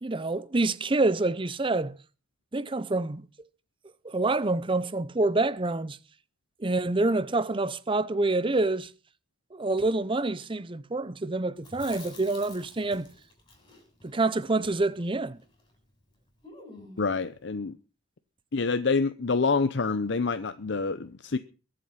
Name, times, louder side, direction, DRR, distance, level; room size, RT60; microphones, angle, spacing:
voice 1, 0.0-2.0 2.5-3.3 4.0-6.0 6.6-8.9 9.5-13.1 14.0-15.4, right 2 dB, 25° right, 0.7 m, -27 dB
Chewing mastication, 11.6-15.8 16.0-16.1 16.4-17.2, left 2 dB, 25° left, 7.1 m, -50 dB
voice 2, 17.0-17.7 18.5-21.4, left 4 dB, 60° left, 0.7 m, -27 dB
22.5 x 7.8 x 5.7 m
head